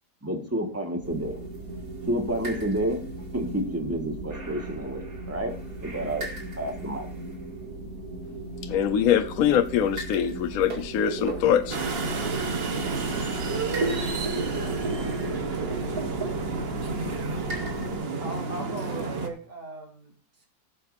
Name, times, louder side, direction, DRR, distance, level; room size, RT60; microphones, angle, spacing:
voice 1, 0.2-1.4 2.1-3.0 3.3-5.5 5.8-6.3 6.6-7.1, right 1 dB, 10° right, 1.6 m, -29 dB
sound 1, 1.0-18.0, right 2 dB, 60° right, 2.7 m, -35 dB
voice 2, 8.6-11.8, left 9 dB, 65° left, 1.2 m, -23 dB
sound 2, 11.7-19.3, right 3 dB, 45° right, 1.1 m, -30 dB
voice 3, 18.2-20.5, right 2 dB, 85° right, 3.8 m, -39 dB
17.5 x 7.7 x 2.6 m
omnidirectional pair, 1.8 m